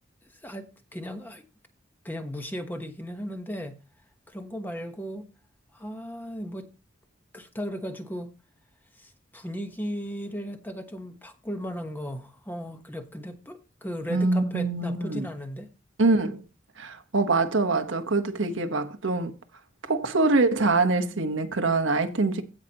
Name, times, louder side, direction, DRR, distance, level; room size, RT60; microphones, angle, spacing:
voice 1, 0.4-1.4 2.0-3.8 4.3-5.2 5.7-6.7 7.3-8.3 9.0-15.7, equal, 10° left, 1.1 m, -36 dB
voice 2, 14.1-15.3 16.0-16.4 16.8-19.4 19.8-22.4, right 3 dB, 80° right, 1.2 m, -24 dB
16.5 x 5.9 x 2.9 m
head